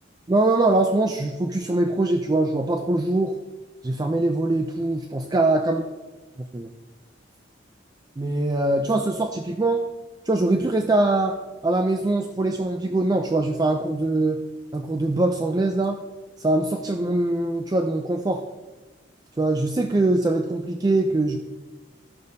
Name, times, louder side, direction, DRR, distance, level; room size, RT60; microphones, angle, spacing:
voice 1, 0.3-3.4 3.8-5.8 6.5-6.7 8.2-9.8 10.3-11.4 11.6-14.4 14.7-16.0 16.4-18.4 19.4-21.4, right 2 dB, 20° right, 4 dB, 0.4 m, -22 dB
13.5 x 6.4 x 2.7 m, 1.2 s
head